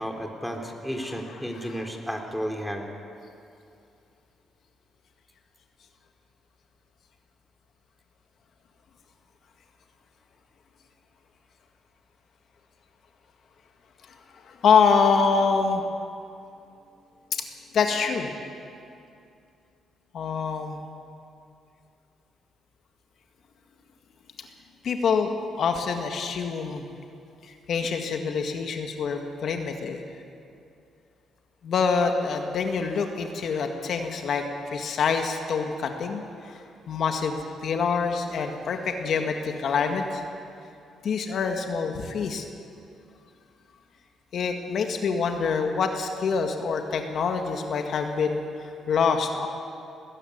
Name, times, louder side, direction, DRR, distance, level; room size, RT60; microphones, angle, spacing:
voice 1, 0.0-2.8, equal, ahead, 2 dB, 3.2 m, -32 dB
voice 2, 1.5-1.9 14.4-15.8 17.7-18.3 20.1-20.8 24.8-26.9 27.4-30.0 31.6-40.2 41.0-42.5 44.3-49.5, left 5 dB, 60° left, 4 dB, 1.9 m, -26 dB
20.5 x 14.5 x 9.6 m, 2.6 s
cardioid pair, 90°, 0 cm